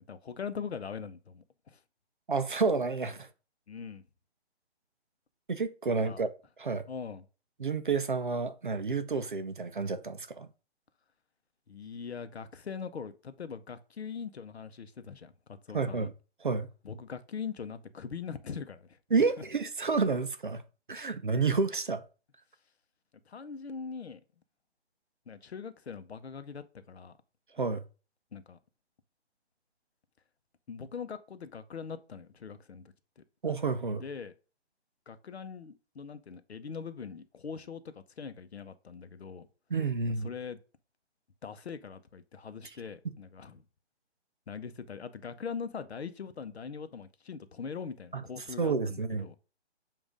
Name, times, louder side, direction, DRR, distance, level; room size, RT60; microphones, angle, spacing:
voice 1, 0.0-1.8 3.7-4.0 5.9-6.3 6.9-7.2 11.7-16.1 16.8-19.0 23.3-24.2 25.3-27.1 28.3-28.6 30.7-33.2 33.9-34.3 35.1-39.5 40.2-40.6 41.4-43.6 44.5-49.4, left 6 dB, 65° left, 0.8 m, -42 dB
voice 2, 2.3-3.3 5.5-6.3 6.6-6.9 7.6-10.5 15.7-16.1 16.4-16.7 19.1-20.6 20.9-22.0 27.5-27.8 33.4-34.0 39.7-40.3 48.1-48.2 48.6-49.4, right 4 dB, 45° right, 0.5 m, -30 dB
7.3 x 2.6 x 5.0 m
hypercardioid pair, 180°, 34 cm